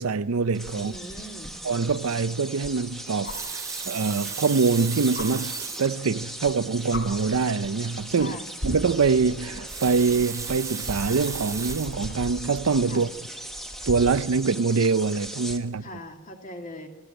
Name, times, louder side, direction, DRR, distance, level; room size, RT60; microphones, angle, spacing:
voice 1, 0.0-0.9 1.6-8.4 8.6-13.1 13.9-15.8, right 4 dB, 90° right, 0.6 m, -24 dB
sound 1, 0.5-15.6, right 1 dB, ahead, 1.2 m, -39 dB
voice 2, 0.7-1.6 8.2-8.4 12.9-13.1 15.8-16.9, left 1 dB, 35° left, 2.1 m, -40 dB
Water tap faucet, 3.1-6.0 6.8-6.9 7.1-7.2 9.4-12.0 12.7-12.9, right 6 dB, 15° right, 0.5 m, -35 dB
sound 2, 3.2-3.5 5.1-5.3 6.4-6.5 6.9-7.0 8.0-8.2 8.6-14.3 15.9-16.0, left 1 dB, 55° left, 3.4 m, -38 dB
27.0 x 13.0 x 7.9 m
head